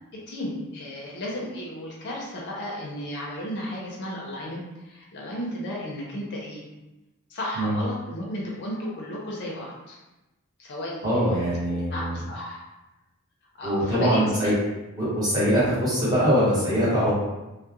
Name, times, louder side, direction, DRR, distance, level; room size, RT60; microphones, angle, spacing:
voice 1, 0.1-6.6 7.3-10.0 10.6-12.6 13.6-14.5, left 1 dB, 55° left, -3 dB, 0.5 m, -34 dB
voice 2, 11.0-12.2 13.6-14.5 15.0-17.1, equal, 20° right, -9 dB, 1.0 m, -22 dB
2.3 x 2.1 x 2.8 m, 1.0 s
head